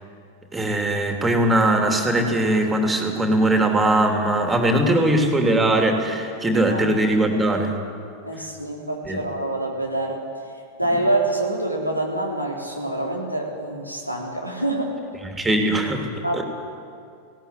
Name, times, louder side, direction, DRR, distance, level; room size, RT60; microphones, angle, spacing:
voice 1, 0.5-7.7 9.0-9.2 15.3-16.1 16.3-16.4, right 1 dB, 10° right, 3 dB, 3.1 m, -20 dB
voice 2, 8.2-10.2 10.8-14.9 16.2-16.4, right 1 dB, 90° left, -1 dB, 3.9 m, -26 dB
19.0 x 17.5 x 9.4 m, 2.4 s
figure-of-eight pair, 90°, 0 cm